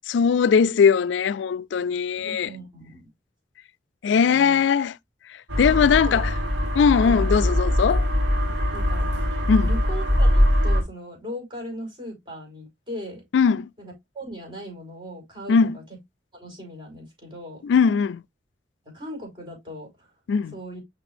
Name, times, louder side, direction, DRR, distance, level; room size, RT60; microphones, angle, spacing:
voice 1, 0.1-2.5 4.0-5.0 5.6-6.3 6.8-8.1 9.5-9.7 13.3-13.7 15.5-15.8 17.6-18.2 20.3-20.5, left 6 dB, 75° left, 0.3 m, -20 dB
voice 2, 2.2-3.0 4.1-4.6 6.0-6.2 7.0-7.3 8.7-9.1 9.6-13.2 13.8-15.8 16.3-17.6 18.9-20.1 20.5-20.8, equal, 30° right, 5.1 m, -38 dB
sound 1, 5.5-10.8, left 1 dB, 70° right, 2.4 m, -22 dB
6.4 x 6.0 x 2.6 m
head